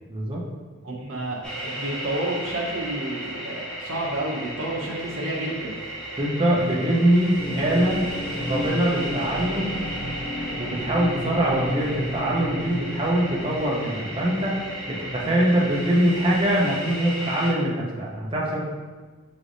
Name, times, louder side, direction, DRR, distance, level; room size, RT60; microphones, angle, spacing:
voice 1, 0.1-0.4 6.2-8.1 8.5-9.8 10.6-14.6 14.9-18.6, right 1 dB, 25° right, -4 dB, 0.6 m, -23 dB
voice 2, 0.8-5.7, right 1 dB, 65° right, -3 dB, 0.9 m, -30 dB
sound 1, 1.4-17.5, right 1 dB, 5° left, 0.8 m, -35 dB
sound 2, 7.4-15.9, left 1 dB, 80° right, 1.5 m, -33 dB
6.0 x 3.2 x 2.6 m, 1.4 s
head